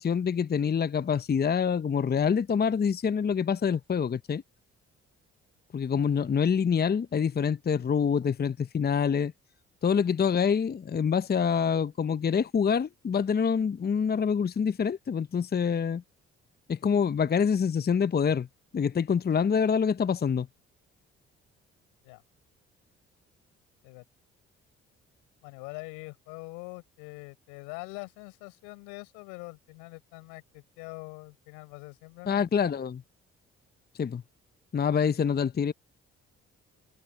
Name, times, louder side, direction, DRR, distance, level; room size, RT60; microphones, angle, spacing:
voice 1, 0.0-4.4 5.7-9.3 9.8-16.0 16.7-18.5 18.7-20.5 32.3-33.0 34.0-34.2 34.7-35.7, left 6 dB, 30° left, 0.7 m, -26 dB
voice 2, 25.4-32.5, left 29 dB, 85° left, 4.6 m, -44 dB
hypercardioid pair, 50°, 32 cm